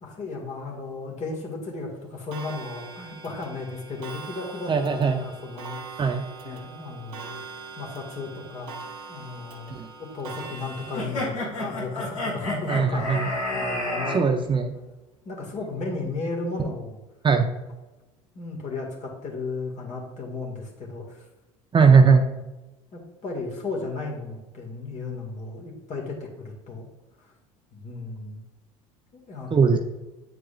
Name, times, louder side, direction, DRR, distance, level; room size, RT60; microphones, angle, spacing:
voice 1, 0.0-6.1 6.4-7.4 7.8-8.8 9.1-14.4 14.7-14.8 15.3-17.0 18.3-21.3 22.9-26.9 27.2-27.3 27.7-28.4 29.1-29.7, left 3 dB, 40° left, -1 dB, 1.9 m, -35 dB
Clock, 2.3-11.0, right 5 dB, 75° right, 1.0 m, -42 dB
voice 2, 4.7-5.2 6.0-6.3 9.7-9.9 12.7-13.3 14.1-14.7 17.2-17.5 21.7-22.2 29.5-29.8, right 5 dB, 25° right, 5 dB, 0.6 m, -19 dB
sound 1, 10.9-14.2, left 1 dB, 80° left, 2.1 m, -29 dB
8.5 x 4.7 x 2.4 m, 1.0 s
hypercardioid pair, 70°, 18 cm